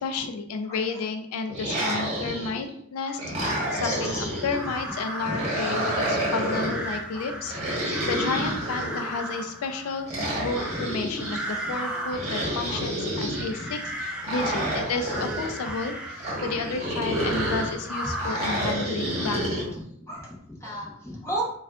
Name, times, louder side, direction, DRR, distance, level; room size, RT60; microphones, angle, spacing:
voice 1, 0.0-19.8, left 4 dB, 85° left, 7 dB, 0.3 m, -32 dB
sound 1, 1.5-2.7 3.2-4.6 5.2-6.8 7.5-9.2 10.1-11.4 12.1-13.5 14.2-15.5 16.2-17.7 18.2-19.7, right 1 dB, 30° right, 1.1 m, -29 dB
voice 2, 1.9-2.3 3.0-3.5 3.8-4.3 5.2-5.5 7.8-8.1 8.4-8.5 10.6-10.8 12.4-12.8 13.5-13.7 14.5-14.7 15.1-15.2 15.7-15.8 16.4-16.5 20.1-21.4, equal, 15° left, -4 dB, 0.8 m, -35 dB
sound 2, 3.5-19.7, right 1 dB, 5° right, 0.4 m, -36 dB
4.3 x 2.3 x 2.3 m, 0.68 s
head